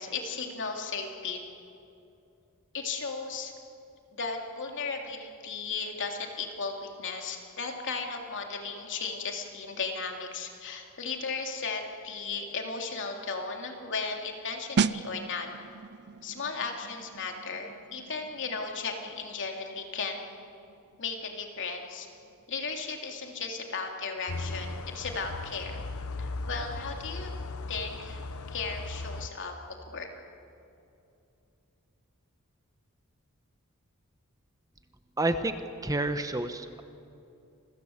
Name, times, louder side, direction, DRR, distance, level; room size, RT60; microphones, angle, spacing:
voice 1, 0.0-1.4 2.7-3.5 4.1-15.5 16.2-20.4 21.0-22.1 22.5-25.8 26.2-27.3 27.7-29.5 29.9-30.1, left 4 dB, 60° left, 2 dB, 3.2 m, -35 dB
sound 1, 14.8-25.3 25.5-25.8, right 6 dB, 50° right, 0.5 m, -37 dB
sound 2, 24.3-29.3, left 3 dB, 80° left, 1.0 m, -37 dB
voice 2, 35.2-35.6 35.8-36.8, right 2 dB, 15° right, 9 dB, 1.0 m, -29 dB
28.0 x 21.5 x 8.1 m, 2.7 s
head